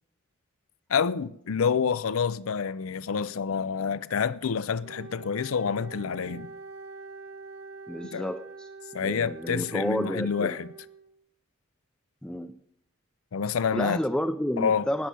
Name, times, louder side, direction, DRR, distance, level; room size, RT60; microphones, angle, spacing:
voice 1, 0.9-6.5 8.1-8.3 8.9-10.7 13.3-14.0 14.6-14.9, left 6 dB, 80° left, 0.5 m, -28 dB
Wind instrument woodwind instrument, 4.8-11.2, right 4 dB, 55° right, 1.5 m, -45 dB
voice 2, 7.9-8.7 9.0-10.6 12.2-12.6 13.7-15.1, equal, 5° left, 0.4 m, -30 dB
19.0 x 7.4 x 5.4 m
head